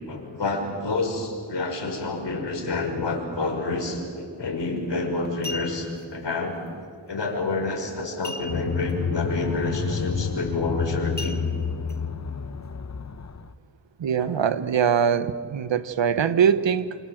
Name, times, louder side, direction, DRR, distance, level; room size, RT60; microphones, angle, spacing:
voice 1, 0.1-6.6 7.1-11.4 14.2-14.3, left 3 dB, 65° left, 2 dB, 6.1 m, -28 dB
sound 1, 4.6-4.8 5.2-6.0 8.2-8.9 9.2-9.3 9.8-10.1 11.2-12.0 12.5-12.6, left 2 dB, 20° left, 1.6 m, -37 dB
sound 2, 8.5-13.5, left 6 dB, 40° left, 1.0 m, -29 dB
voice 2, 14.0-17.0, right 7 dB, 75° right, 13 dB, 1.2 m, -22 dB
28.0 x 27.0 x 7.9 m, 2.2 s
cardioid pair, 60°, 45 cm